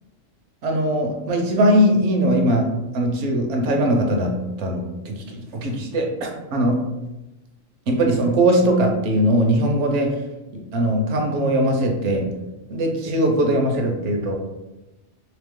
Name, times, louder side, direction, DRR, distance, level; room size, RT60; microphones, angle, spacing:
voice 1, 0.6-6.9 7.9-10.2 10.5-12.3 12.7-14.3, right 1 dB, 65° right, 2 dB, 1.0 m, -20 dB
3.3 x 2.9 x 3.6 m, 1.0 s
omnidirectional pair, 1.3 m